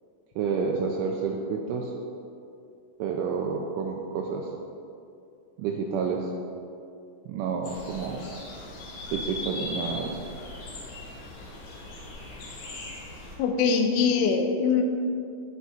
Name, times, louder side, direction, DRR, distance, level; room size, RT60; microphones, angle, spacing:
voice 1, 0.4-1.9 3.0-4.5 5.6-6.3 7.3-8.2 9.1-10.2, right 5 dB, 80° right, 1 dB, 3.0 m, -29 dB
sound 1, 7.6-13.4, left 2 dB, 60° left, 3.5 m, -39 dB
voice 2, 13.4-14.8, left 5 dB, 80° left, 4 dB, 3.0 m, -23 dB
16.5 x 6.1 x 4.3 m, 2.5 s
omnidirectional pair, 5.9 m